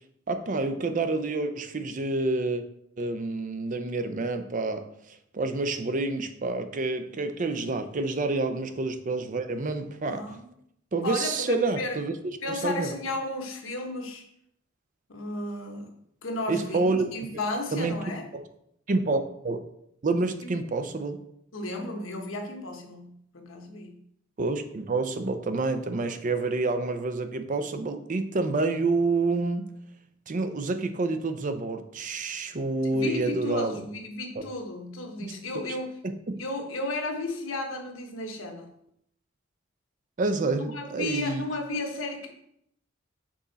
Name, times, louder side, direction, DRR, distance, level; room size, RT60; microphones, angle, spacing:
voice 1, 0.3-2.6 3.0-10.3 10.9-13.0 16.5-17.0 17.7-17.9 18.3-18.5 18.9-19.6 20.0-21.2 24.4-29.7 30.3-33.8 34.4-34.5 35.2-35.3 36.0-36.4 40.2-41.4, right 3 dB, 40° right, 9 dB, 0.5 m, -28 dB
voice 2, 10.1-10.5 11.0-12.0 12.4-14.2 15.1-15.9 16.2-18.2 20.4-20.5 21.5-24.0 32.8-36.0 36.4-38.7 40.6-42.3, left 2 dB, 85° left, 3 dB, 1.1 m, -34 dB
6.1 x 4.3 x 4.0 m, 0.73 s
head